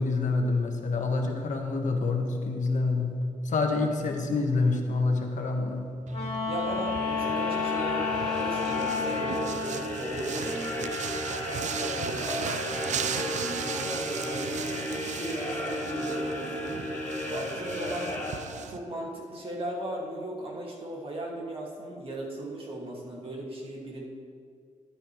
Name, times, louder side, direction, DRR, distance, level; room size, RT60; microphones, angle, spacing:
voice 1, 0.0-3.2 3.4-5.9, left 3 dB, 70° left, 3 dB, 1.3 m, -27 dB
Wind instrument woodwind instrument, 6.1-9.8, left 5 dB, 45° left, 1.8 m, -30 dB
sound 1, 6.1-18.8, right 8 dB, 65° right, 0.4 m, -37 dB
voice 2, 6.4-11.0 11.4-14.7 15.0-16.8 17.3-24.0, right 1 dB, 45° right, -2 dB, 2.0 m, -38 dB
sound 2, 6.6-18.9, left 1 dB, 15° left, 3.2 m, -34 dB
12.5 x 11.5 x 3.1 m, 2.2 s
wide cardioid pair, 120°, 13 cm